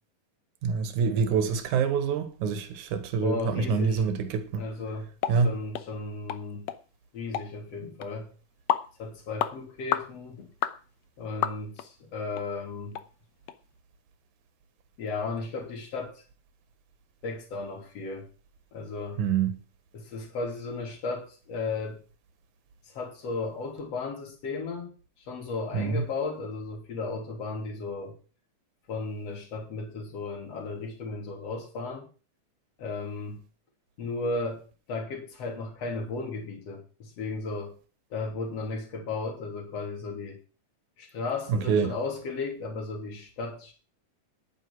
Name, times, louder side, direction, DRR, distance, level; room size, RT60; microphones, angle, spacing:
voice 1, 0.6-4.6 5.3-5.5 19.2-19.6 25.7-26.0 41.5-41.9, right 6 dB, 70° right, 2.9 m, -26 dB
voice 2, 3.2-4.1 4.6-5.1 5.4-6.7 7.1-8.3 9.0-10.5 11.2-13.0 15.0-16.2 17.2-18.3 18.7-19.2 19.9-22.0 22.8-28.2 28.9-32.1 32.8-33.4 34.0-37.7 38.1-40.4 41.0-43.7, left 3 dB, 50° left, 4.0 m, -35 dB
sound 1, 5.2-5.4 5.7-5.9 6.3-6.4 6.7-6.8 7.3-7.5 8.0-8.1 8.7-8.9 9.4-9.5 9.9-10.1 10.6-10.8 11.4-11.9 12.3-12.4 12.9-13.1 13.5-13.6, left 11 dB, 70° left, 1.9 m, -29 dB
11.0 x 9.8 x 6.1 m
omnidirectional pair, 3.7 m